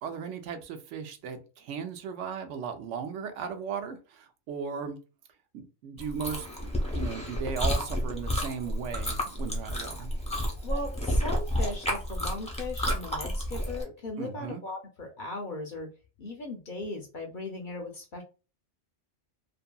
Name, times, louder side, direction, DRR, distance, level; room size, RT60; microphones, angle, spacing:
voice 1, 0.0-5.0 5.5-10.1 14.2-14.6, right 6 dB, 80° right, 7 dB, 0.9 m, -36 dB
Chewing mastication, 6.0-13.8, equal, 10° left, 0.5 m, -31 dB
voice 2, 10.6-15.9 16.2-18.2, left 2 dB, 55° left, 2 dB, 0.6 m, -38 dB
2.7 x 2.6 x 2.2 m, 0.32 s
omnidirectional pair, 1.2 m